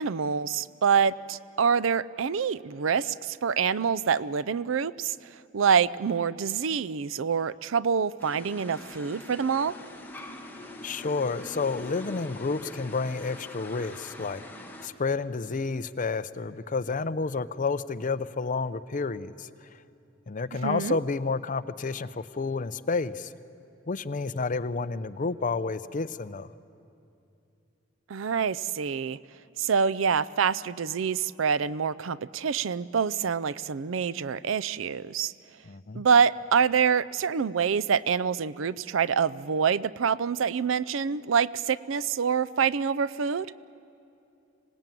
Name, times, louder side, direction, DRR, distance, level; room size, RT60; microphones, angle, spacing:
voice 1, 0.0-9.7 20.6-21.0 28.1-29.2 29.6-35.3 35.9-43.5, right 6 dB, 70° right, 19 dB, 0.5 m, -26 dB
sound 1, 8.2-14.9, left 1 dB, 10° left, 1.9 m, -43 dB
voice 2, 10.8-14.4 14.8-19.5 20.3-23.3 23.9-26.5 35.7-36.0, left 4 dB, 40° left, 14 dB, 0.6 m, -30 dB
25.5 x 18.0 x 9.2 m, 2.7 s
head